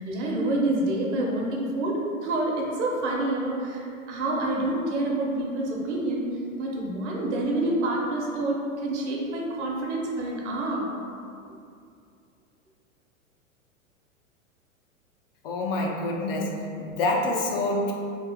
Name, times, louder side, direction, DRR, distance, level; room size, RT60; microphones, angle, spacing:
voice 1, 0.0-10.9, right 1 dB, 55° right, -2 dB, 0.9 m, -27 dB
voice 2, 15.4-17.9, left 2 dB, 45° left, 0 dB, 0.5 m, -27 dB
3.2 x 2.4 x 3.5 m, 2.4 s
hypercardioid pair, 100°, 41 cm